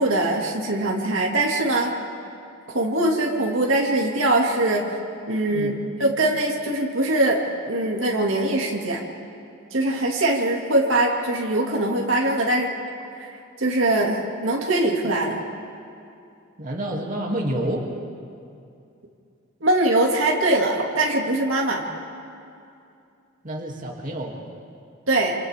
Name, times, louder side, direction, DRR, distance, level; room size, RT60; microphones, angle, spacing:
voice 1, 0.0-1.9 2.7-4.9 5.3-5.7 6.0-7.4 7.7-9.0 9.7-12.7 13.6-15.4 19.6-21.8 25.1-25.4, right 2 dB, 70° right, -1 dB, 2.3 m, -22 dB
voice 2, 16.6-17.9 23.4-24.4, right 1 dB, 40° right, -1 dB, 2.6 m, -29 dB
29.0 x 27.0 x 3.6 m, 2.5 s
head